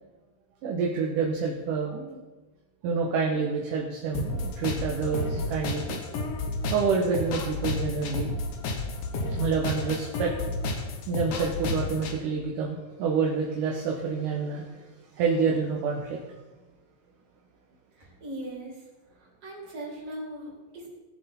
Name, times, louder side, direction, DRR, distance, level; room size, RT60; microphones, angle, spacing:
voice 1, 0.6-2.2 2.8-6.0 6.7-8.3 9.4-10.3 11.1-14.9 15.1-16.2, right 5 dB, 70° right, -1 dB, 2.6 m, -28 dB
sound 1, 4.1-12.1, left 3 dB, 75° left, 2.7 m, -31 dB
voice 2, 17.9-18.9 19.1-20.9, right 1 dB, 40° right, -4 dB, 4.4 m, -39 dB
18.5 x 7.2 x 4.3 m, 1.2 s
omnidirectional pair, 4.1 m